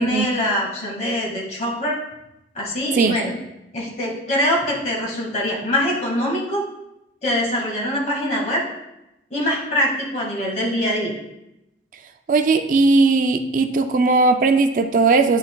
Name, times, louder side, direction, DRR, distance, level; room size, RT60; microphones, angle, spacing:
voice 1, 0.0-2.0 2.5-3.4 3.7-6.6 7.2-8.6 9.3-11.1, equal, 40° left, -3 dB, 1.8 m, -23 dB
voice 2, 12.3-15.4, right 3 dB, 45° right, 7 dB, 0.3 m, -17 dB
9.8 x 5.7 x 2.2 m, 0.91 s
head